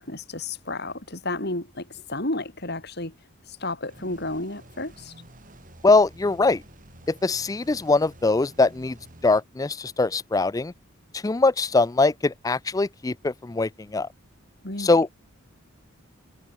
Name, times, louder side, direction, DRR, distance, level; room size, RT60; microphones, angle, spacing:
voice 1, 0.0-3.1 3.4-5.1 14.6-14.9, left 2 dB, 50° left, 4.6 m, -32 dB
sound 1, 3.9-9.4, right 1 dB, 40° right, 5.3 m, -50 dB
voice 2, 5.8-6.6 7.1-9.0 9.2-10.7 11.1-14.1 14.8-15.1, left 3 dB, 15° left, 0.4 m, -22 dB
head